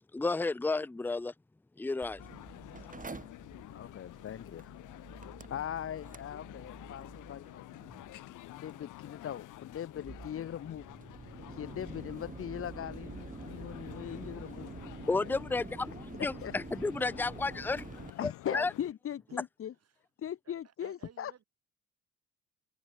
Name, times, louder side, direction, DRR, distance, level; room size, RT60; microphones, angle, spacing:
voice 1, 0.1-1.3 1.8-2.2 15.1-15.9 16.2-17.9 18.5-18.7, left 3 dB, 5° left, 0.6 m, -32 dB
Mechanical fan, 2.0-18.1, right 4 dB, 25° right, 5.1 m, -48 dB
sound 1, 2.2-18.9, left 16 dB, 90° left, 2.8 m, -50 dB
voice 2, 3.7-4.7 5.5-7.9 8.5-10.8 11.5-14.7 15.1-15.4 16.2-16.6 18.2-19.7 20.2-21.3, left 10 dB, 45° left, 0.8 m, -40 dB
voice 3, 20.4-21.4, right 8 dB, 55° right, 6.8 m, -55 dB
open air
cardioid pair, 90°, 30 cm